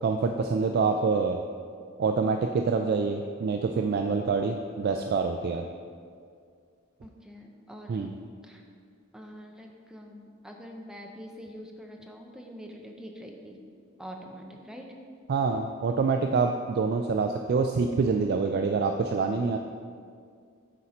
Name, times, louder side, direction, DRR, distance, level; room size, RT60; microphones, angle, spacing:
voice 1, 0.0-1.4 2.0-5.6 7.9-8.1 15.3-19.6, right 4 dB, 50° right, 5 dB, 0.3 m, -26 dB
voice 2, 7.0-8.2 8.4-8.6 9.1-13.6 14.0-14.9, equal, 5° right, 1 dB, 0.6 m, -45 dB
8.3 x 4.3 x 5.0 m, 2.2 s
head